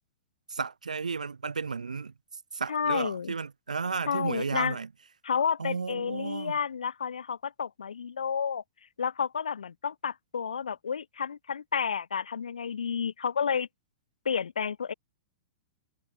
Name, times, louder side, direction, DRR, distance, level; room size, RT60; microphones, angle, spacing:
voice 1, 0.5-2.1 2.5-4.9 5.6-6.6, right 5 dB, 85° right, 1.7 m, -33 dB
voice 2, 2.7-3.3 4.1-4.8 5.2-8.6 9.0-13.7 14.2-14.9, left 7 dB, 75° left, 0.7 m, -31 dB
figure-of-eight pair, 105°, 4 cm